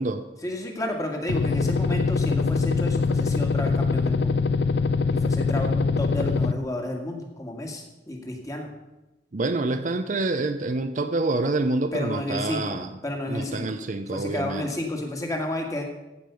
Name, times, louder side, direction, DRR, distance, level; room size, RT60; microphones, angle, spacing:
voice 1, 0.4-4.4 5.1-8.7 11.9-12.8 13.0-13.7 14.1-15.8, left 1 dB, 20° left, 2 dB, 1.8 m, -31 dB
sound 1, 1.3-6.5, left 4 dB, 65° left, 0.5 m, -23 dB
voice 2, 9.3-13.0 13.3-14.7, right 2 dB, 45° right, 9 dB, 0.6 m, -27 dB
15.5 x 5.4 x 6.8 m, 0.99 s
head